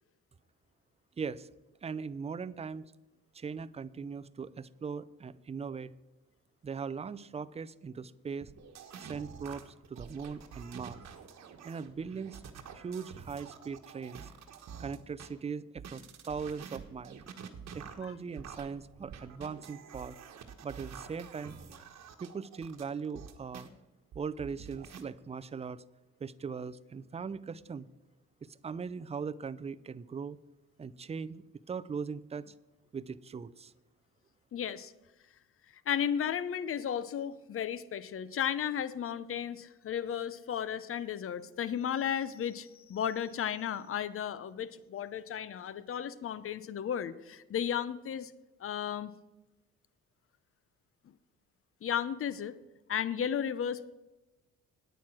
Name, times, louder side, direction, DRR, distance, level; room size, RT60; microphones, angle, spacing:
voice 1, 1.2-1.5 1.8-2.9 3.3-5.9 6.6-8.5 9.0-11.0 11.6-12.4 12.7-14.3 14.8-17.2 17.7-20.2 20.6-21.5 22.2-23.7 24.1-25.8 26.2-27.9 28.4-30.4 30.8-32.5 32.9-33.7, right 5 dB, 20° right, 14 dB, 0.5 m, -40 dB
sound 1, 8.4-15.3 15.8-23.7 24.1-25.0, right 7 dB, 60° right, 1.4 m, -48 dB
voice 2, 34.5-34.9 35.9-48.3 48.6-49.1 51.8-52.5 52.9-53.8, left 9 dB, 45° left, 16 dB, 0.7 m, -34 dB
9.3 x 9.1 x 6.0 m, 1.1 s
cardioid pair, 90°, 30 cm